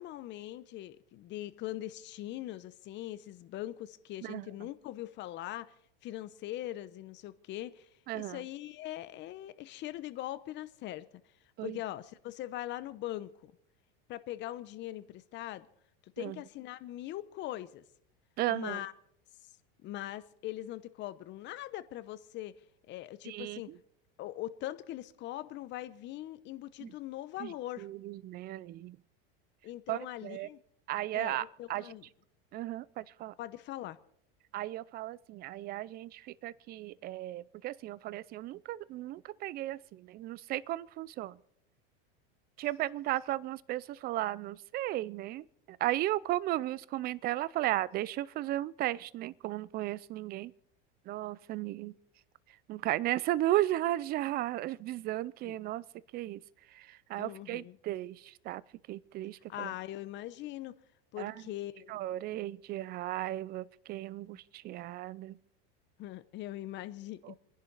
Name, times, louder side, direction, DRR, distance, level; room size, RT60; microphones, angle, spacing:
voice 1, 0.0-5.7 6.0-7.9 8.1-11.0 11.6-13.5 14.1-15.7 16.2-17.8 18.5-18.9 19.8-22.5 22.9-23.7 24.2-27.9 29.6-30.6 31.1-32.0 33.4-34.0 55.4-55.5 57.2-57.8 59.5-60.8 61.1-62.0 66.0-67.4, left 14 dB, 40° left, 0.9 m, -41 dB
voice 2, 8.1-8.4 11.6-11.8 16.2-16.4 18.4-18.8 23.2-23.8 26.8-26.9 27.4-29.0 29.9-30.5 30.9-31.9 32.5-33.3 34.5-41.4 42.6-50.5 51.1-51.9 52.7-55.8 56.1-56.4 56.7-58.6 58.9-59.7 61.2-61.3 61.9-65.4 67.2-67.3, right 15 dB, 30° right, 0.5 m, -35 dB
27.5 x 11.0 x 4.0 m
supercardioid pair, 135°, 30 cm